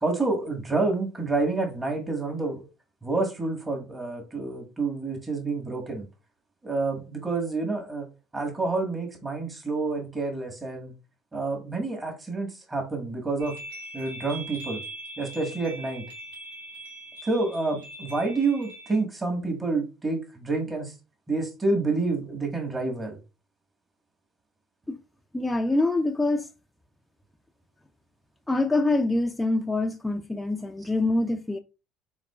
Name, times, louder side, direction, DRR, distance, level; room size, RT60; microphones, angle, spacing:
voice 1, 0.0-2.7 3.0-6.1 6.6-8.1 8.3-10.9 11.3-13.6 13.9-14.8 15.2-16.0 17.2-20.9 21.3-23.2, right 3 dB, 20° right, 1.6 m, -28 dB
sound 1, 13.4-19.0, right 2 dB, 90° right, 1.4 m, -41 dB
voice 2, 25.3-26.5 28.5-31.6, left 2 dB, 10° left, 0.5 m, -25 dB
4.8 x 3.9 x 2.4 m
hypercardioid pair, 70°, 0 cm